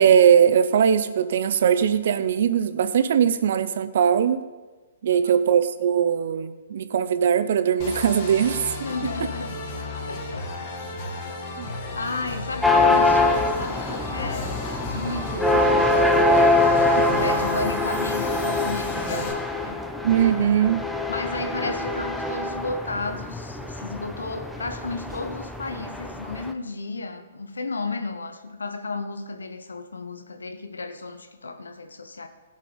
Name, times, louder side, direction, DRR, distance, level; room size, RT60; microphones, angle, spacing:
voice 1, 0.0-4.4 5.0-8.8 11.6-11.7 17.0-17.1 20.0-20.8, right 8 dB, 60° right, 12 dB, 0.7 m, -20 dB
sound 1, 7.8-19.3, left 2 dB, 40° left, 2.0 m, -33 dB
voice 2, 8.8-9.6 10.1-10.5 11.9-16.2 17.1-19.8 21.1-32.3, left 3 dB, 85° left, 8 dB, 1.0 m, -33 dB
sound 2, 12.6-26.5, left 2 dB, ahead, 0.7 m, -24 dB
16.5 x 5.5 x 5.2 m, 1.3 s
hypercardioid pair, 125°, 0 cm